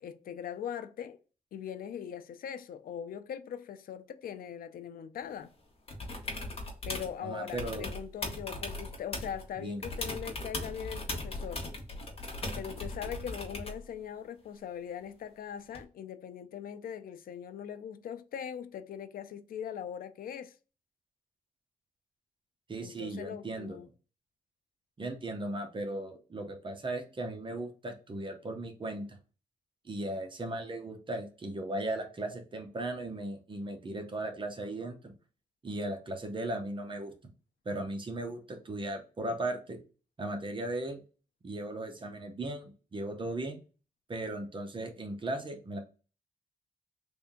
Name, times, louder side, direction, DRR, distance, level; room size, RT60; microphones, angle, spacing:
voice 1, 0.0-1.2 1.5-5.5 6.9-11.6 12.6-20.6 22.8-23.9, left 8 dB, 75° left, 0.5 m, -41 dB
sound 1, 5.9-7.1 7.5-9.5 9.8-13.9 15.7-15.8, left 2 dB, 40° left, 1.2 m, -38 dB
voice 2, 7.2-7.9 9.6-9.8 22.7-23.8 25.0-29.2 29.8-35.1 35.6-37.1 37.6-39.8 40.2-41.0 41.4-43.6 44.1-45.8, right 1 dB, 35° right, 0.8 m, -37 dB
3.4 x 2.7 x 3.7 m
cardioid pair, 100°, 15 cm